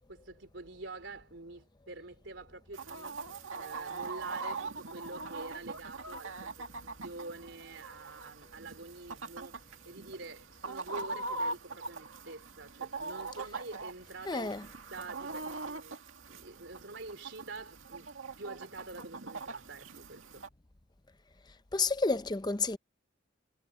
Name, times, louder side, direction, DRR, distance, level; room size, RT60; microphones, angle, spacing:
voice 1, 0.1-3.2 3.5-14.6 14.9-18.1 18.4-20.5, right 3 dB, 65° right, 3.8 m, -47 dB
Chicken rooster, 2.7-20.5, right 3 dB, 85° right, 2.2 m, -42 dB
voice 2, 14.3-14.6 21.7-22.8, left 4 dB, 20° left, 0.6 m, -30 dB
head